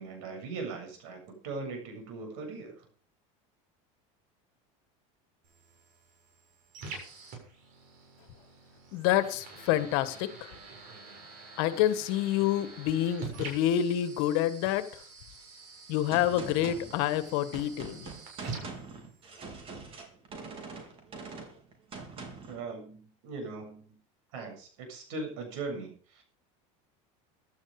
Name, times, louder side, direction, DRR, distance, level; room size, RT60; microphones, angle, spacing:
voice 1, 0.0-2.8 22.5-24.0 24.3-26.2, right 3 dB, 75° right, 4 dB, 7.5 m, -39 dB
sound 1, 5.4-19.4, right 4 dB, 55° right, 7.1 m, -46 dB
voice 2, 8.9-10.3 11.6-15.0 15.9-18.1, left 12 dB, 70° left, 12 dB, 1.8 m, -28 dB
Gunshot gunfire, 16.1-22.6, right 4 dB, 35° right, 4.1 m, -44 dB
15.0 x 11.5 x 5.0 m, 0.42 s
supercardioid pair, 130°, 16 cm